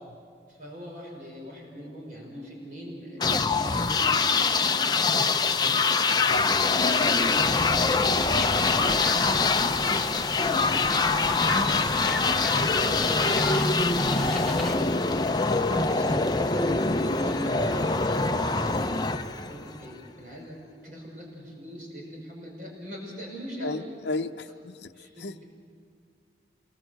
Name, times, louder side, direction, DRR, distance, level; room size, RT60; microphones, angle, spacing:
voice 1, 0.5-5.1 5.5-6.0 6.4-9.1 15.4-16.3 16.9-19.0 19.4-23.9 24.9-25.4, equal, 45° right, -1 dB, 5.6 m, -42 dB
sound 1, 3.2-19.9, left 3 dB, 25° left, 0.6 m, -24 dB
sound 2, 6.3-14.8, left 2 dB, ahead, 2.0 m, -38 dB
voice 2, 23.6-24.9 25.2-25.4, left 3 dB, 75° left, 9 dB, 0.7 m, -33 dB
27.0 x 21.0 x 7.9 m, 2.2 s
head